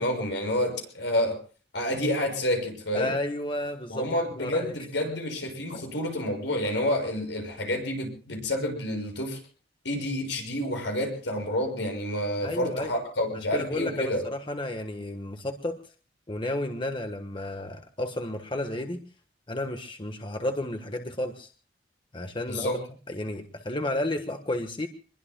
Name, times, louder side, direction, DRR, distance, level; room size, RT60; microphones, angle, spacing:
voice 1, 0.0-1.4 1.7-3.1 3.9-9.4 9.8-14.2 22.5-22.8, left 1 dB, 85° left, 2 dB, 6.7 m, -29 dB
voice 2, 2.9-4.0 4.3-4.7 12.4-12.9 13.5-15.8 16.3-19.0 19.5-21.5 22.1-22.8 23.1-24.9, left 1 dB, 30° left, 5 dB, 1.3 m, -32 dB
26.5 x 21.5 x 2.3 m, 0.40 s
head